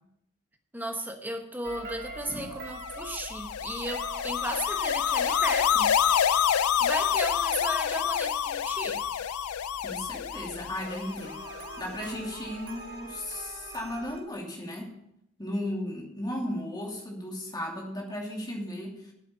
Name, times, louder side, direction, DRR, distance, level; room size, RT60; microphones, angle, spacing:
voice 1, 0.7-6.0 6.8-9.0, right 1 dB, 10° right, 1.2 m, -35 dB
sound 1, 1.6-14.2, right 2 dB, 40° right, 5.2 m, -44 dB
sound 2, 2.8-12.1, left 9 dB, 90° left, 0.4 m, -28 dB
voice 2, 9.8-11.4 11.8-15.0 15.4-19.1, left 1 dB, 20° left, 2.5 m, -35 dB
9.0 x 7.4 x 8.3 m
head